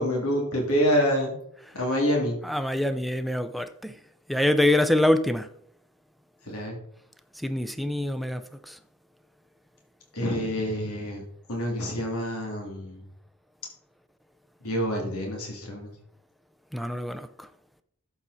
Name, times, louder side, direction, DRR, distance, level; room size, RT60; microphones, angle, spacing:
voice 1, 0.0-1.4 1.7-2.4 6.5-6.8 10.1-11.2 11.5-13.0 14.6-15.9, equal, 70° left, 3.0 m, -27 dB
voice 2, 2.4-4.0 4.3-5.5 7.3-8.8 16.7-17.5, left 1 dB, ahead, 0.6 m, -25 dB
12.0 x 7.9 x 4.2 m
head